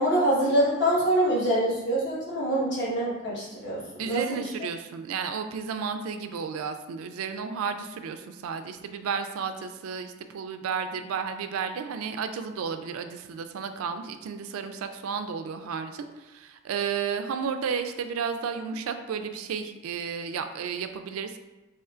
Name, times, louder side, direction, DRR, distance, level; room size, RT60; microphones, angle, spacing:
voice 1, 0.0-4.5, right 1 dB, 55° left, -7 dB, 1.3 m, -25 dB
voice 2, 4.0-21.4, right 6 dB, 85° right, 8 dB, 0.3 m, -32 dB
4.3 x 3.0 x 2.4 m, 1.1 s
head